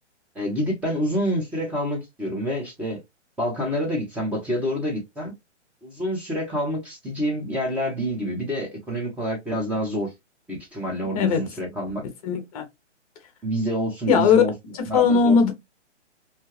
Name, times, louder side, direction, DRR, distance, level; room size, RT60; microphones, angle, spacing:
voice 1, 0.3-3.0 3.4-5.3 5.8-10.1 10.5-12.0 13.4-14.5 14.9-15.4, equal, 5° right, 0.7 m, -27 dB
voice 2, 12.2-12.6 14.1-14.4 14.7-15.5, left 6 dB, 30° left, 0.8 m, -19 dB
2.8 x 2.3 x 3.1 m
hypercardioid pair, 145°, 36 cm